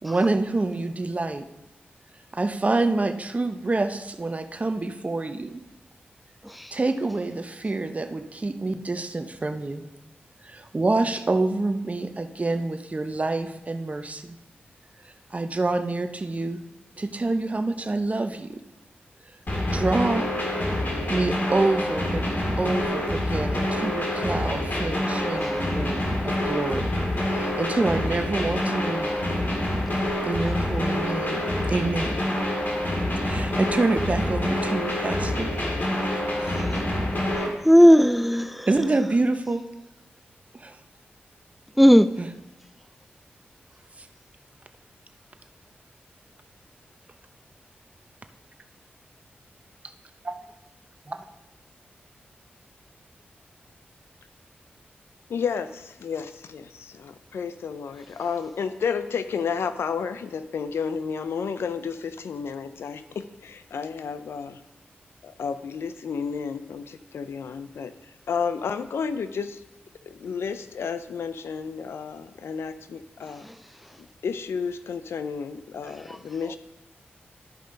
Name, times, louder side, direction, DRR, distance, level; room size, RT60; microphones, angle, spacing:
voice 1, 0.0-1.4 2.3-5.6 6.7-9.8 10.4-14.4 15.0-16.6 17.0-18.6 19.7-20.3 20.8-22.3 22.6-26.9 27.3-29.3 30.2-32.2 33.2-36.7 38.7-39.6 40.5-40.8 42.2-42.3 44.0-44.1 50.2-50.3 51.1-51.2, right 2 dB, 35° right, 0.8 m, -27 dB
sound 1, 19.5-37.5, left 1 dB, 50° left, 1.9 m, -26 dB
voice 2, 36.4-36.9 37.6-38.7 41.8-42.1, equal, ahead, 0.3 m, -16 dB
voice 3, 55.3-64.6 65.2-69.6 70.0-73.5 74.0-76.6, left 6 dB, 85° left, 0.5 m, -31 dB
12.5 x 5.2 x 3.8 m
cardioid pair, 50°, 4 cm